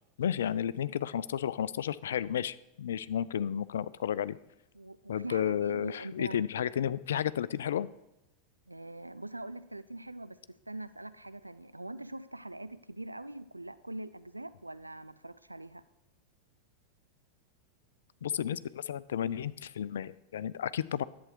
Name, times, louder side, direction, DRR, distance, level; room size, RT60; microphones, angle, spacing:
voice 1, 0.2-4.4 5.1-7.9 18.2-21.0, left 9 dB, 60° left, 17 dB, 0.3 m, -32 dB
voice 2, 4.7-6.4 8.7-10.4 10.7-15.8, right 1 dB, 85° right, 14 dB, 0.3 m, -43 dB
11.0 x 8.0 x 4.6 m, 0.90 s
figure-of-eight pair, 90°, 0 cm